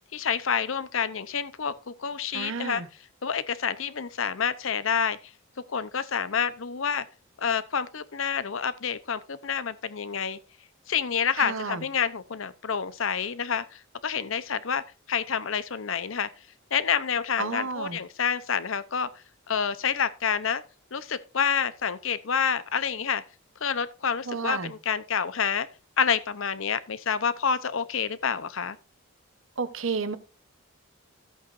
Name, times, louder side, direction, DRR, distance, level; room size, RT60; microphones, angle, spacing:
voice 1, 0.1-2.8 3.2-5.2 5.7-7.1 7.4-10.4 10.9-16.3 16.7-19.1 19.5-20.6 20.9-23.2 23.6-25.7 26.0-28.8, left 7 dB, 70° left, 0.7 m, -28 dB
voice 2, 2.3-2.9 11.4-11.8 17.4-18.0 24.3-24.7 29.6-30.2, right 4 dB, 70° right, 1.0 m, -31 dB
14.0 x 8.2 x 2.6 m
head